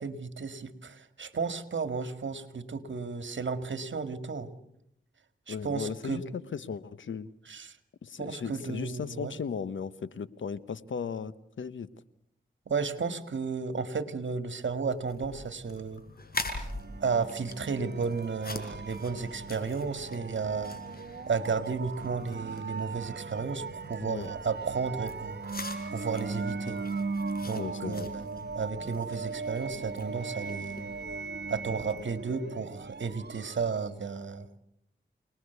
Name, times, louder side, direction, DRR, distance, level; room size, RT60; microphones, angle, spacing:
voice 1, 0.0-4.5 5.5-6.3 7.5-7.8 8.2-9.4 12.7-16.0 17.0-20.8 21.3-25.4 25.9-26.8 27.4-30.9 31.5-34.6, right 5 dB, 75° right, 10 dB, 2.0 m, -33 dB
voice 2, 5.5-7.3 8.0-11.9 24.0-24.3 27.5-28.1, left 6 dB, 90° left, 16 dB, 1.0 m, -36 dB
sound 1, 14.9-32.2, left 2 dB, 50° left, 4.9 m, -44 dB
sound 2, 16.5-34.0, right 4 dB, 60° right, 1.3 m, -39 dB
28.0 x 20.0 x 8.2 m, 0.77 s
cardioid pair, 50°, 19 cm